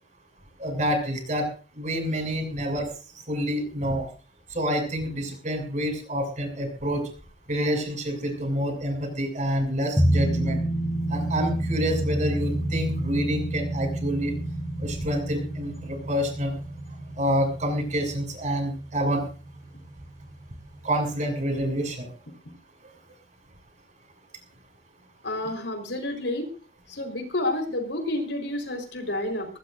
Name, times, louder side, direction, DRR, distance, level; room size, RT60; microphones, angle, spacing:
voice 1, 0.6-1.5 1.8-2.9 3.3-4.1 4.5-7.0 7.5-10.6 11.1-14.3 14.8-16.5 17.2-19.2 20.8-22.1, equal, 45° right, 4 dB, 7.1 m, -27 dB
sound 1, 10.0-19.1 19.4-19.5, right 1 dB, 20° right, 6.8 m, -28 dB
voice 2, 25.2-26.5 26.9-29.5, left 1 dB, 85° left, 5 dB, 4.5 m, -29 dB
20.5 x 18.5 x 2.7 m, 0.36 s
head